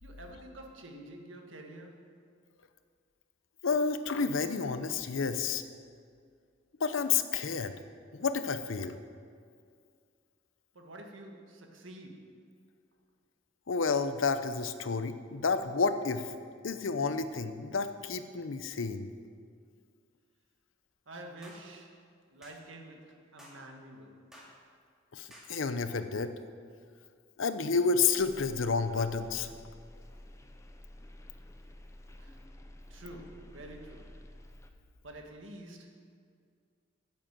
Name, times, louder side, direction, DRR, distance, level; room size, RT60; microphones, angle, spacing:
voice 1, 0.0-2.2 10.7-12.4 21.1-22.0 22.3-24.2 32.2-32.4 32.9-34.2 35.0-36.1, right 1 dB, 80° right, 2 dB, 1.6 m, -48 dB
voice 2, 3.6-5.6 6.8-7.8 8.1-9.0 13.7-16.3 16.6-19.1 25.1-26.3 27.4-29.5, left 5 dB, 85° left, 10 dB, 0.7 m, -30 dB
Hand claps, 21.4-21.6 22.4-22.6 23.4-23.6 24.3-24.5 25.3-25.5, equal, 5° right, 2.2 m, -53 dB
sound 1, 28.2-34.7, left 1 dB, 15° left, 0.7 m, -51 dB
10.0 x 7.5 x 7.5 m, 2.2 s
head